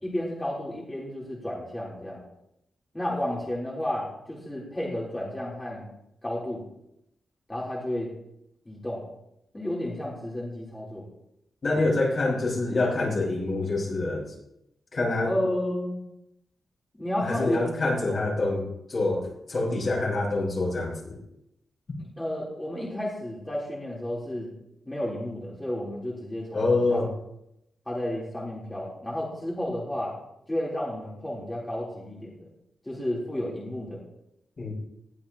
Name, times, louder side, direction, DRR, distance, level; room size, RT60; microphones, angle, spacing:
voice 1, 0.0-2.2 2.9-5.9 6.2-6.6 7.5-8.1 8.7-9.0 9.5-11.1 11.7-11.9 15.2-16.0 17.0-17.7 18.1-18.4 22.2-24.5 24.9-27.0 27.9-30.2 30.5-32.5 32.8-34.0, left 1 dB, 15° left, -6 dB, 3.8 m, -32 dB
voice 2, 11.6-14.2 14.9-15.3 17.2-21.2 26.5-27.1 34.6-34.7, left 2 dB, 40° left, -3 dB, 5.7 m, -26 dB
20.0 x 16.0 x 3.0 m, 0.82 s
wide cardioid pair, 160°, 0 cm